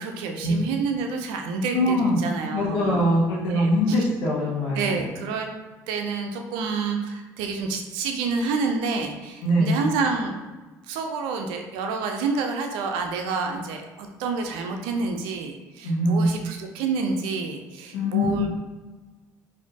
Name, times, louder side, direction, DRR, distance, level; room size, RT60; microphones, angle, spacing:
voice 1, 0.0-3.0 3.4-4.0 4.7-5.5 5.9-10.4 10.9-18.5, right 4 dB, 75° right, 4 dB, 0.5 m, -28 dB
voice 2, 1.7-2.2 2.5-5.0 9.4-9.9 15.8-16.3 17.9-18.5, equal, 70° left, -5 dB, 0.9 m, -22 dB
4.2 x 2.6 x 2.8 m, 1.2 s
hypercardioid pair, 65°, 9 cm